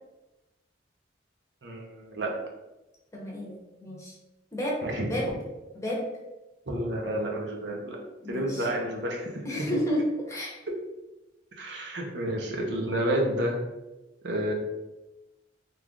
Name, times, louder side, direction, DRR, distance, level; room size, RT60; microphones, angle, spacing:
voice 1, 1.6-2.3 4.8-5.1 6.7-8.0 8.3-9.5 11.6-13.6 14.2-14.5, right 1 dB, 75° right, 0 dB, 0.7 m, -30 dB
voice 2, 3.1-4.2 4.5-4.8 5.0-5.3 5.7-6.1 8.2-8.7 9.4-10.6, equal, 15° left, -3 dB, 0.7 m, -31 dB
3.2 x 2.4 x 3.6 m, 1.0 s
head